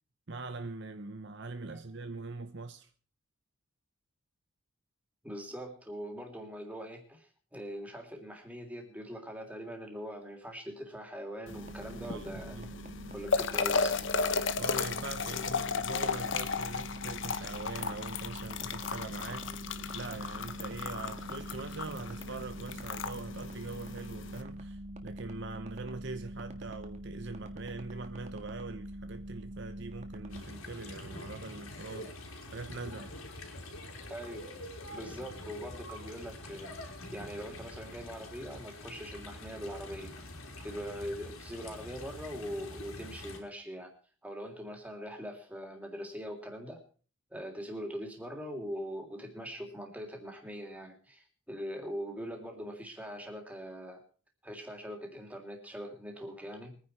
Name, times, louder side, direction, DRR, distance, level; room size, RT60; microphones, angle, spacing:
voice 1, 0.3-2.9 12.0-12.7 13.0-13.1 14.5-32.2 32.5-33.1, right 3 dB, 55° right, 0.9 m, -42 dB
voice 2, 5.2-12.6 13.1-14.0 34.1-34.5 34.9-36.8 37.1-40.3 40.6-43.9 44.2-46.8 47.3-54.0 54.4-56.8, equal, 5° right, 3.1 m, -42 dB
sound 1, 11.5-24.4, left 5 dB, 60° left, 1.0 m, -35 dB
sound 2, 11.5-30.4, equal, 35° right, 1.8 m, -44 dB
sound 3, 30.3-43.4, left 1 dB, 80° left, 4.1 m, -45 dB
23.0 x 9.9 x 4.8 m
head